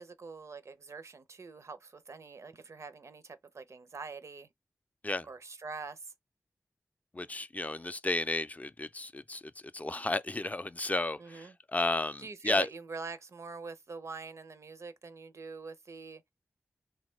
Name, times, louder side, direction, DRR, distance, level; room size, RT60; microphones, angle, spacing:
voice 1, 0.0-4.5 5.2-6.1 11.2-11.6 12.2-16.2, right 4 dB, 65° right, 0.5 m, -44 dB
voice 2, 7.1-9.4 9.7-12.7, left 2 dB, 30° left, 0.3 m, -33 dB
3.4 x 2.1 x 3.1 m
cardioid pair, 50°, 5 cm